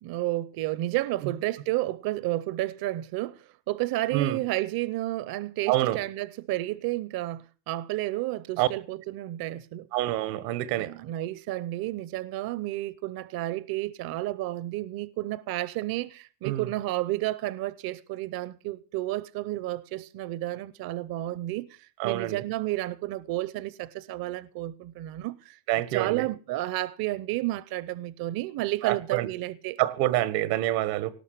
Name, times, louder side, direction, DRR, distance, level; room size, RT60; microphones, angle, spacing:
voice 1, 0.0-9.9 10.7-29.8, right 16 dB, 45° right, 0.7 m, -31 dB
voice 2, 5.7-6.0 8.6-8.7 9.9-10.9 16.4-16.7 22.0-22.4 25.7-26.2 28.8-29.3 29.8-31.1, right 15 dB, 80° right, 1.7 m, -26 dB
18.5 x 6.4 x 9.4 m
supercardioid pair, 120°, 49 cm